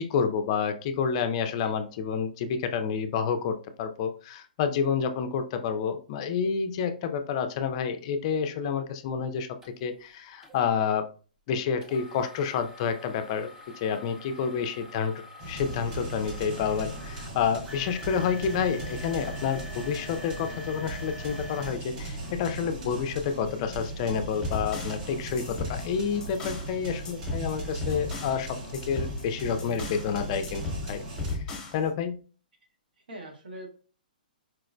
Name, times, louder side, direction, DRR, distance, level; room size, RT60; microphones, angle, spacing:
voice 1, 0.0-9.5 9.8-11.1 11.5-13.5 13.8-15.1 15.5-28.6 28.9-30.6 30.9-31.1 31.3-31.4 31.7-32.2, left 6 dB, 40° left, 8 dB, 0.4 m, -29 dB
sound 1, 9.6-9.7 10.4-10.6 11.8-22.7 23.2-23.3 23.9-24.1, left 1 dB, 10° right, 0.5 m, -46 dB
sound 2, 15.4-31.4, right 2 dB, 60° right, 1.7 m, -38 dB
sound 3, 24.1-26.7 27.0-28.4 28.7-30.1 30.4-31.8, left 3 dB, 15° left, 0.9 m, -36 dB
voice 2, 33.1-33.7, right 1 dB, 75° right, 1 dB, 1.2 m, -43 dB
4.3 x 2.0 x 2.5 m, 0.38 s
hypercardioid pair, 140°, 5 cm